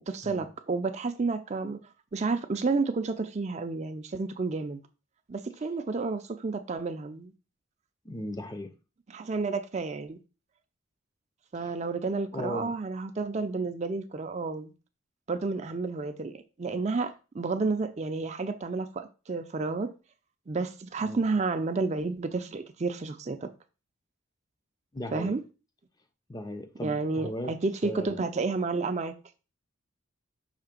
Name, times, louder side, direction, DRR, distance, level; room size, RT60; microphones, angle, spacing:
voice 1, 0.1-1.8 2.1-4.8 5.3-7.3 9.1-10.2 11.5-14.7 15.3-19.9 20.5-23.5 25.1-25.4 26.8-29.1, right 3 dB, 35° right, 0.4 m, -31 dB
voice 2, 8.0-8.7 11.6-11.7 12.3-12.8 21.0-21.2 24.9-25.4 26.3-27.6 27.8-28.2, left 1 dB, 20° left, 0.5 m, -37 dB
5.7 x 3.2 x 5.1 m
head